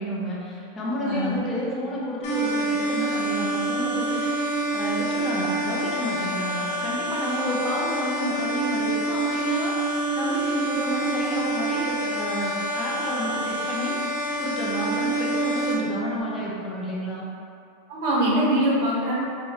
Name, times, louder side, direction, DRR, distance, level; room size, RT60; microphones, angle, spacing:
voice 1, 0.0-17.3, equal, 20° left, -5 dB, 0.6 m, -30 dB
voice 2, 1.0-1.4 17.9-19.1, right 1 dB, 60° right, -5 dB, 1.0 m, -23 dB
sound 1, 2.2-15.7, right 2 dB, 70° left, 0.9 m, -27 dB
3.2 x 2.3 x 4.1 m, 2.5 s
supercardioid pair, 135°, 0 cm